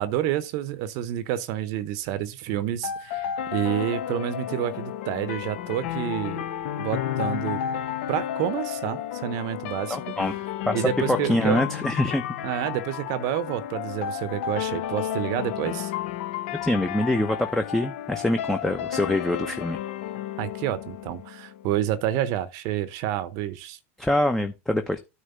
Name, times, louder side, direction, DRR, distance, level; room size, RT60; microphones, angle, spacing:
voice 1, 0.0-6.4 6.8-7.6 8.1-10.1 10.7-11.6 12.4-15.9 20.4-23.8, right 12 dB, 55° right, 0.8 m, -29 dB
sound 1, 2.8-21.8, left 10 dB, 65° left, 1.0 m, -32 dB
voice 2, 9.9-10.3 10.7-10.9 11.3-12.2 16.6-19.8 24.0-25.0, left 1 dB, 5° left, 0.8 m, -25 dB
9.5 x 3.2 x 6.7 m
hypercardioid pair, 105°, 7 cm